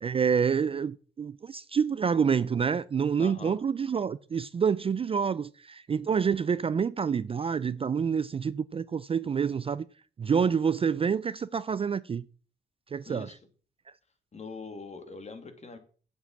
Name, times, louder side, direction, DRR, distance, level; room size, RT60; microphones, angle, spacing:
voice 1, 0.0-9.9 10.2-12.2 12.9-13.3, right 6 dB, 30° right, 0.4 m, -27 dB
voice 2, 3.2-3.6 13.1-13.4 14.3-15.8, left 4 dB, 35° left, 2.5 m, -42 dB
8.0 x 7.9 x 7.2 m
cardioid pair, 90°, 20 cm